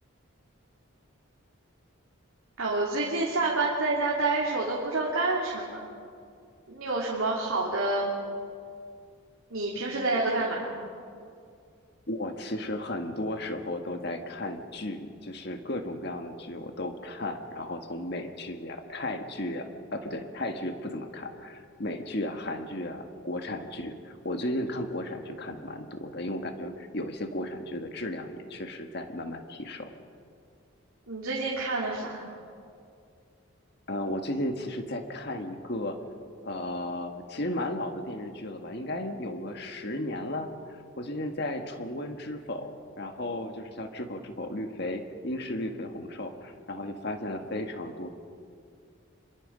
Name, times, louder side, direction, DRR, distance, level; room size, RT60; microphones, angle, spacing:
voice 1, 2.6-5.8 6.7-8.1 9.5-10.9 31.1-32.3, right 2 dB, 90° right, -4 dB, 3.0 m, -28 dB
voice 2, 12.1-29.9 33.9-36.0 36.4-42.7 43.0-48.1, left 1 dB, 50° left, 5 dB, 1.7 m, -34 dB
25.5 x 22.0 x 5.2 m, 2.3 s
head